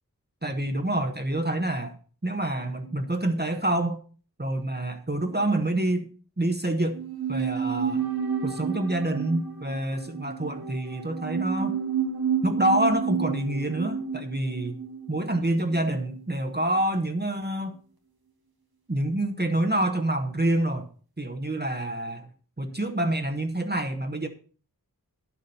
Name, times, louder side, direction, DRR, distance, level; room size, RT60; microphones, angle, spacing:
voice 1, 0.4-1.9 2.2-4.0 4.4-6.1 6.4-7.0 7.3-8.1 8.4-11.8 12.4-14.7 15.1-17.8 18.9-20.9 21.2-22.3 22.6-24.3, right 1 dB, 30° right, 1.1 m, -27 dB
sound 1, 6.9-16.2 16.5-16.6, right 7 dB, 85° right, 1.5 m, -31 dB
10.5 x 7.1 x 5.5 m
wide cardioid pair, 40°, 36 cm